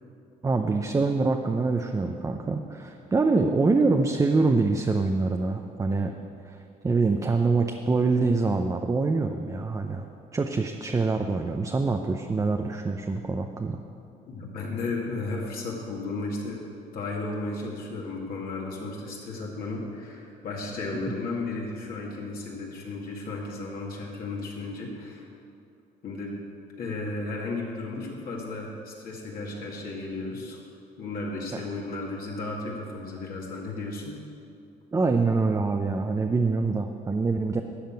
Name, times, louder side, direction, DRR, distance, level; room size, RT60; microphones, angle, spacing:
voice 1, 0.4-6.1 6.5-6.6 6.8-10.0 10.3-13.8 31.5-31.6 34.9-37.6, right 3 dB, 20° right, 4 dB, 0.6 m, -25 dB
voice 2, 14.3-16.6 16.9-25.3 26.0-26.3 26.8-30.6 31.0-34.2, left 3 dB, 60° left, -3 dB, 2.2 m, -34 dB
12.5 x 5.8 x 8.9 m, 2.5 s
cardioid pair, 110°, 17 cm